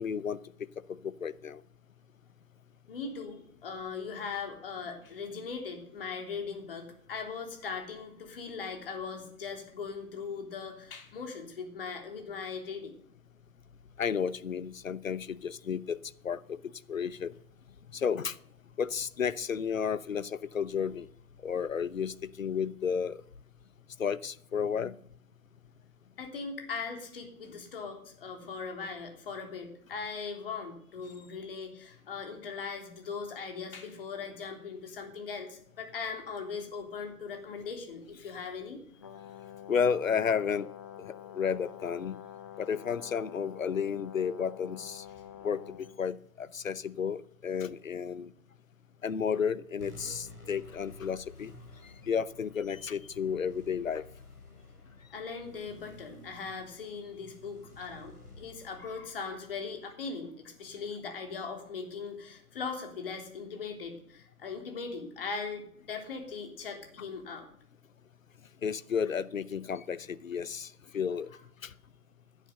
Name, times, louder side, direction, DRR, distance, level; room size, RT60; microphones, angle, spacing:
voice 1, 0.0-1.6 14.0-17.3 17.9-18.4 18.8-21.1 21.4-23.2 24.0-24.9 39.7-40.7 41.0-42.2 42.6-45.0 45.4-48.3 49.0-51.5 52.1-54.0 68.6-71.3 71.6-71.7, left 7 dB, 60° left, 18 dB, 0.9 m, -32 dB
voice 2, 2.9-12.9 26.2-38.8 55.1-67.5, left 5 dB, 40° left, 3 dB, 3.3 m, -39 dB
Brass instrument, 39.0-46.0, left 10 dB, 15° left, 0.7 m, -47 dB
sound 1, 49.8-60.6, left 2 dB, 85° left, 5.5 m, -52 dB
15.5 x 10.0 x 6.8 m, 0.65 s
figure-of-eight pair, 145°, 44 cm